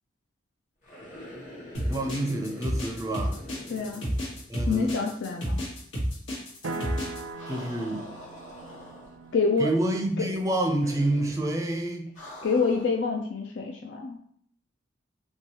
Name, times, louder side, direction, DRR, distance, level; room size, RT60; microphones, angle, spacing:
sound 1, 0.8-5.0 5.2-5.3 7.4-9.4 10.8-11.5 12.2-13.0, left 1 dB, 35° left, 1.2 m, -45 dB
sound 2, 1.7-7.2, equal, 85° left, 1.3 m, -30 dB
voice 1, 1.9-3.4 4.5-4.9 7.5-8.1 9.6-12.2, right 1 dB, 15° right, 3 dB, 0.4 m, -28 dB
voice 2, 3.7-4.0 4.7-5.6 9.3-9.7 10.2-10.3 12.4-14.2, left 4 dB, 65° left, 1 dB, 0.4 m, -26 dB
sound 3, 6.6-10.7, right 3 dB, 80° right, 0.5 m, -40 dB
4.4 x 2.3 x 2.9 m, 0.63 s
head